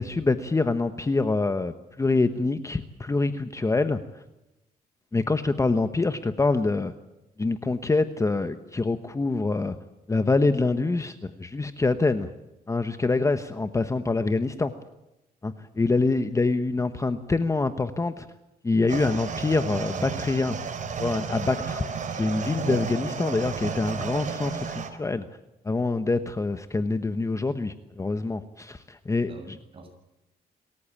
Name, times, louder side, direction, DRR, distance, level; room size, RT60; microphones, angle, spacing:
voice 1, 0.0-4.2 5.1-6.9 7.4-9.8 10.1-12.3 12.7-14.7 15.4-18.3 18.6-20.6 21.0-25.2 25.6-29.3, left 3 dB, 20° left, 10 dB, 1.1 m, -25 dB
sound 1, 18.9-24.9, right 6 dB, 50° right, 3.2 m, -32 dB
voice 2, 29.2-29.9, right 2 dB, 35° right, 5 dB, 7.2 m, -47 dB
26.5 x 14.5 x 8.8 m, 0.94 s
cardioid pair, 110°, 17 cm